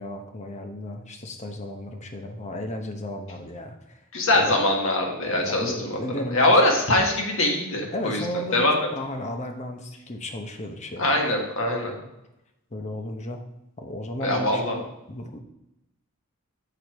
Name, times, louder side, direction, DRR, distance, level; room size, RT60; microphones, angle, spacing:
voice 1, 0.0-4.0 4.3-4.6 5.3-6.8 7.9-8.7 8.9-11.0 11.9-12.0 12.7-13.4 13.8-15.4, left 1 dB, 35° left, 4 dB, 0.9 m, -34 dB
voice 2, 4.1-8.2 8.5-8.9 11.0-11.9 14.2-14.8, left 1 dB, 65° left, 1 dB, 1.5 m, -22 dB
7.0 x 4.6 x 4.7 m, 0.90 s
head